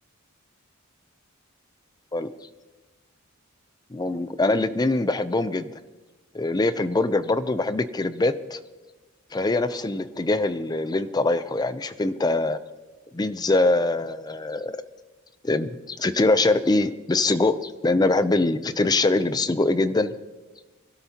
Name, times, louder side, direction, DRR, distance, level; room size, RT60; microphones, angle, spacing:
voice 1, 3.9-5.7 6.3-8.6 9.3-12.6 13.1-14.8 15.4-20.1, left 2 dB, 20° left, 13 dB, 0.5 m, -23 dB
23.0 x 12.5 x 2.9 m, 1.2 s
head